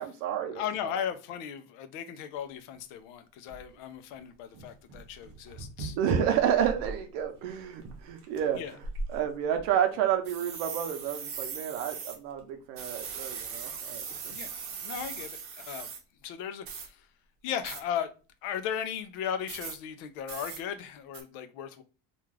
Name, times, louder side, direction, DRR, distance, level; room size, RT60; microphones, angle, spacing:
voice 1, 0.0-0.6 6.0-8.6 9.1-14.3, right 9 dB, 85° right, 0.7 m, -30 dB
voice 2, 0.5-6.0 8.6-8.7 14.3-15.9 16.2-17.1 17.4-18.1 18.4-21.8, left 9 dB, 80° left, 0.5 m, -36 dB
sound 1, 2.7-2.8 3.5-3.6 4.2-4.3 4.5-7.0 7.3-7.5 7.8-8.4 8.8-9.6 10.3-12.2 12.8-16.0 16.7-16.9 17.6-17.8 19.5-19.8 20.3-20.6 21.1-21.2, right 4 dB, 45° right, 0.7 m, -38 dB
2.5 x 2.3 x 3.1 m
cardioid pair, 135°, 31 cm